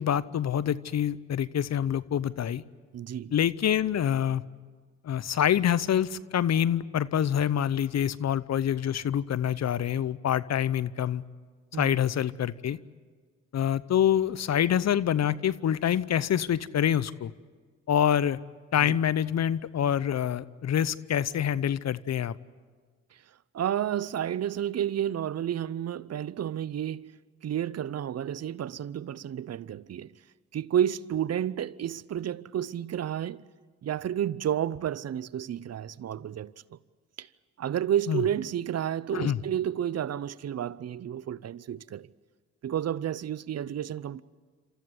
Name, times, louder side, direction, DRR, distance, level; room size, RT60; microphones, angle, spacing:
voice 1, 0.0-2.6 3.3-4.4 5.0-11.2 11.7-12.8 13.5-17.3 17.9-18.4 18.7-22.4 38.1-38.2 39.1-39.4, left 9 dB, 55° left, 0.8 m, -26 dB
voice 2, 2.9-3.3 11.7-12.0 18.8-18.9 23.5-27.1 27.4-30.1 30.5-33.4 33.8-36.5 37.2-37.3 37.6-42.1 42.6-44.2, right 10 dB, 50° right, 0.7 m, -31 dB
27.5 x 14.5 x 9.7 m
supercardioid pair, 50°, 33 cm